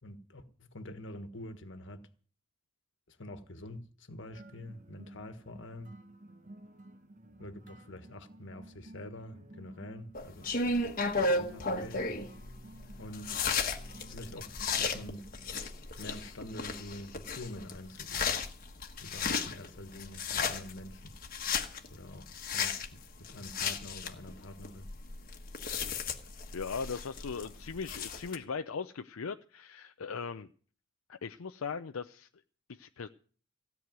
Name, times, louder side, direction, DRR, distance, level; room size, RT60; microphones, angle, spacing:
voice 1, 0.0-2.1 3.1-6.0 7.4-10.9 11.2-12.0 13.0-13.4 14.1-15.3 16.0-18.3 19.0-21.1 21.9-24.9, left 1 dB, 60° left, 1.5 m, -46 dB
sound 1, 4.3-15.7, right 1 dB, 35° right, 1.1 m, -53 dB
sound 2, 10.2-28.4, left 4 dB, 40° left, 1.3 m, -35 dB
voice 2, 26.5-30.5 31.1-32.3 32.7-33.1, left 5 dB, 85° left, 0.6 m, -39 dB
16.5 x 6.3 x 9.3 m
head